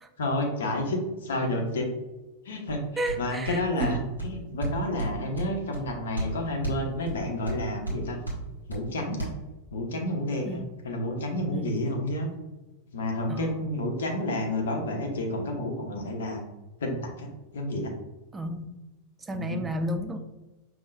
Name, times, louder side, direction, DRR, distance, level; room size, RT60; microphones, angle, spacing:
voice 1, 0.2-1.9 2.4-2.8 3.2-8.2 8.7-9.3 9.7-12.3 12.9-16.4 16.8-17.3 17.5-17.9 19.3-19.6, left 1 dB, 65° left, 2 dB, 0.8 m, -30 dB
sound 1, 2.7-9.3, right 1 dB, 85° right, 1.2 m, -35 dB
voice 2, 3.0-4.0 10.4-10.7 11.5-11.7 13.3-13.6 18.3-18.7 19.2-20.2, right 1 dB, 15° right, 7 dB, 0.4 m, -32 dB
5.4 x 2.9 x 2.5 m, 1.1 s
figure-of-eight pair, 90°, 0 cm